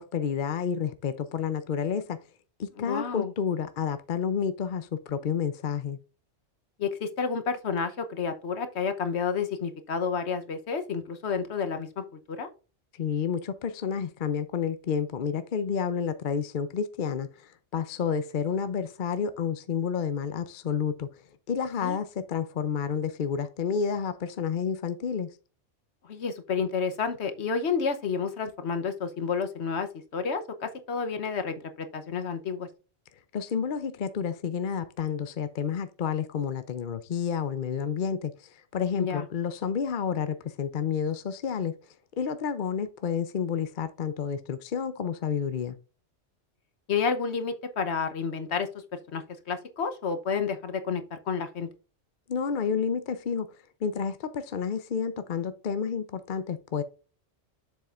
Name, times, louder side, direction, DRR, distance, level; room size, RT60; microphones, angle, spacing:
voice 1, 0.0-2.2 2.6-6.0 13.0-21.1 21.5-25.3 33.3-38.3 38.7-41.8 42.2-45.8 52.3-53.5 53.8-56.8, left 7 dB, 50° left, 0.7 m, -30 dB
voice 2, 2.8-3.3 6.8-12.5 21.8-22.0 26.0-32.7 39.0-39.3 46.9-48.7 49.1-51.7, left 5 dB, 70° left, 1.2 m, -30 dB
7.4 x 7.1 x 2.5 m
omnidirectional pair, 1.2 m